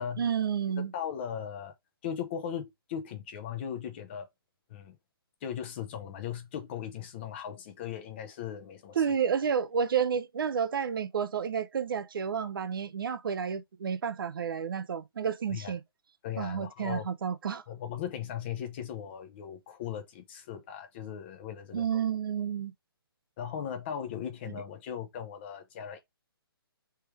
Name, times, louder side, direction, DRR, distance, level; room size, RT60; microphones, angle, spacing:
voice 1, 0.2-0.9 8.9-15.8 16.4-17.6 21.7-22.7, right 7 dB, 60° right, 0.6 m, -30 dB
voice 2, 0.8-1.7 2.0-4.3 4.7-5.0 5.4-9.0 15.5-15.7 16.2-17.1 17.7-21.9 23.4-26.0, left 9 dB, 25° left, 0.8 m, -38 dB
3.5 x 3.3 x 4.6 m
hypercardioid pair, 160°, 13 cm